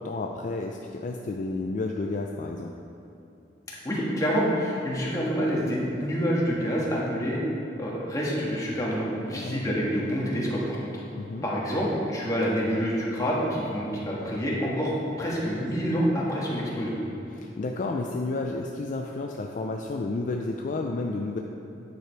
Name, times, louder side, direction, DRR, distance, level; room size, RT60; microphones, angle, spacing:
voice 1, 0.0-2.7 9.3-9.6 11.1-11.5 17.3-21.4, left 3 dB, 45° left, 1 dB, 0.4 m, -31 dB
voice 2, 3.8-7.4 7.8-10.8 11.4-16.9, equal, 20° left, -5 dB, 1.5 m, -27 dB
9.3 x 5.0 x 4.5 m, 2.9 s
head